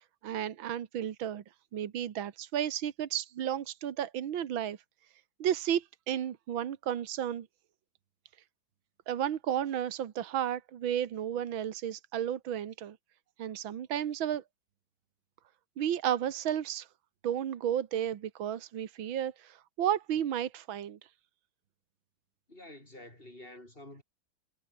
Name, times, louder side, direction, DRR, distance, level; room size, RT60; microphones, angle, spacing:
voice 1, 0.2-1.4 1.7-4.8 5.4-7.5 9.1-13.0 13.4-14.4 15.8-16.9 17.2-21.0, right 10 dB, 75° right, 2.1 m, -33 dB
voice 2, 22.5-24.0, left 1 dB, 25° left, 8.2 m, -49 dB
omnidirectional pair, 2.2 m